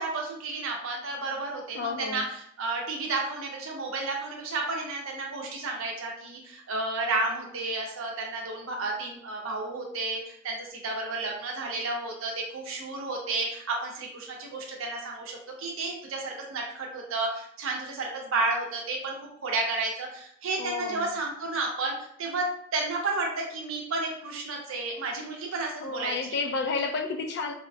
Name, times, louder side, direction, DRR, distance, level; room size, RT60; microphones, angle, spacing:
voice 1, 0.0-19.1 19.4-22.5 22.7-26.2, right 3 dB, 75° right, 0 dB, 0.6 m, -32 dB
voice 2, 1.7-2.3 20.6-21.1 25.8-27.5, left 4 dB, 55° left, 6 dB, 0.4 m, -31 dB
4.0 x 2.1 x 2.6 m, 0.68 s
head